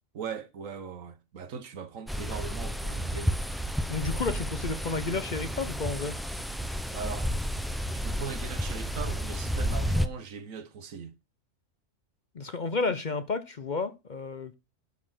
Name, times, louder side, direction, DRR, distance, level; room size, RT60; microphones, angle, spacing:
voice 1, 0.1-3.4 6.9-7.4 7.9-11.1, right 6 dB, 80° right, 1.5 m, -39 dB
sound 1, 2.1-10.1, equal, ahead, 0.5 m, -31 dB
voice 2, 3.9-6.2 12.3-14.6, left 4 dB, 40° left, 0.8 m, -31 dB
11.5 x 4.3 x 7.6 m
omnidirectional pair, 1.4 m